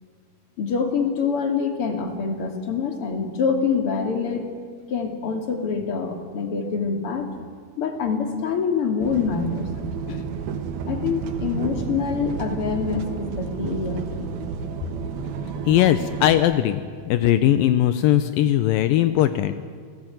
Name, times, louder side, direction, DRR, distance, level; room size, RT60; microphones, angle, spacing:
voice 1, 0.6-4.5 4.9-7.3 7.8-9.7 10.9-14.0, left 5 dB, 35° left, 5 dB, 2.8 m, -25 dB
sound 1, 9.0-16.4, right 6 dB, 65° right, 3.1 m, -31 dB
voice 2, 15.7-16.8 17.1-19.6, left 12 dB, 85° left, 11 dB, 2.0 m, -19 dB
29.0 x 18.5 x 9.2 m, 2.1 s
omnidirectional pair, 5.1 m